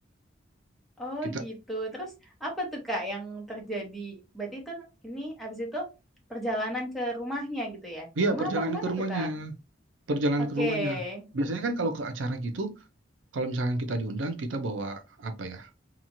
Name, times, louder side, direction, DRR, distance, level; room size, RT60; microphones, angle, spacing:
voice 1, 1.0-2.1 2.4-5.9 6.3-9.3 10.6-11.2, equal, ahead, 0.9 m, -34 dB
voice 2, 8.2-9.5 10.1-11.0 11.3-12.7 13.3-15.7, right 2 dB, 90° right, 0.5 m, -30 dB
2.9 x 2.4 x 2.6 m
head